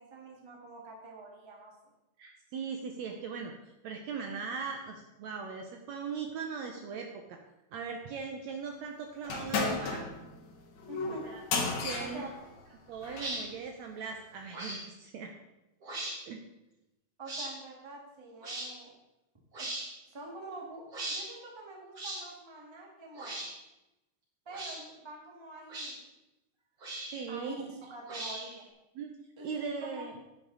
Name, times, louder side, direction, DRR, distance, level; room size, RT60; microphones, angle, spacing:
voice 1, 0.0-1.9 10.9-11.2 12.0-12.3 17.2-18.9 19.6-19.7 20.1-20.8 21.1-23.5 24.4-26.0 27.0-28.7 29.4-30.1, right 2 dB, 15° right, -1 dB, 1.2 m, -46 dB
voice 2, 2.2-3.5 3.8-7.4 7.7-10.1 11.1-12.3 12.9-15.3 16.3-16.4 27.1-27.6 29.0-29.1 29.4-30.1, right 5 dB, 70° right, 3 dB, 1.8 m, -39 dB
sound 1, 9.2-13.4, left 4 dB, 60° left, 2.4 m, -34 dB
sound 2, 13.1-13.4 14.5-14.8 15.8-16.2 17.3-17.5 18.4-18.7 19.5-19.9 20.9-21.2 22.0-22.2 23.2-23.5 24.5-24.8 25.7-25.9 26.8-27.2 28.1-28.6, right 2 dB, 45° right, 4.5 m, -38 dB
10.5 x 9.7 x 4.0 m, 0.95 s
omnidirectional pair, 3.8 m